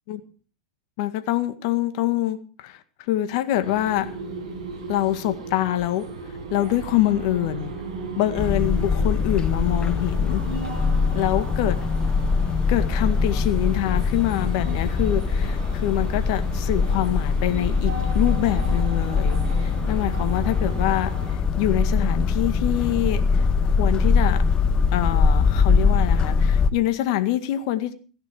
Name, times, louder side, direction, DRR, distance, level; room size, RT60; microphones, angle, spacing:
voice 1, 1.0-4.1 4.9-7.7 8.2-10.4 11.1-11.8 12.7-21.1 21.6-24.4 24.9-27.9, left 13 dB, 55° left, 1.8 m, -25 dB
sound 1, 3.6-21.4, right 3 dB, 70° right, 6.7 m, -36 dB
sound 2, 8.4-26.7, left 5 dB, 25° left, 1.2 m, -22 dB
16.5 x 11.0 x 6.0 m
hypercardioid pair, 100°, 3 cm